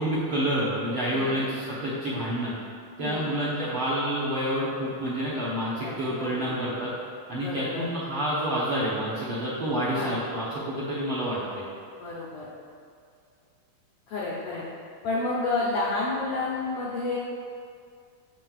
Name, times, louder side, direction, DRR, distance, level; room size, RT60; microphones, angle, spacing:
voice 1, 0.0-2.5 3.0-6.9 7.3-11.6, equal, 65° right, -8 dB, 1.3 m, -28 dB
voice 2, 1.1-1.4 3.0-3.3 5.8-5.9 6.2-6.6 7.4-7.9 9.9-10.1 12.0-12.5 14.1-14.6 15.0-17.2, left 3 dB, 80° left, -6 dB, 1.3 m, -30 dB
7.5 x 7.4 x 2.4 m, 2.3 s
omnidirectional pair, 3.8 m